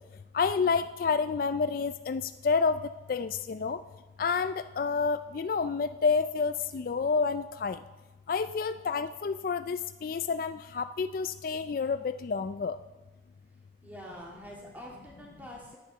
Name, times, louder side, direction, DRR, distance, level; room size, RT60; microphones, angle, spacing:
voice 1, 0.3-2.8 3.1-3.8 4.2-7.8 8.3-12.8, left 5 dB, 50° left, 12 dB, 0.3 m, -29 dB
voice 2, 13.8-15.8, equal, 10° right, -3 dB, 2.6 m, -45 dB
10.5 x 9.6 x 6.6 m, 1.1 s
head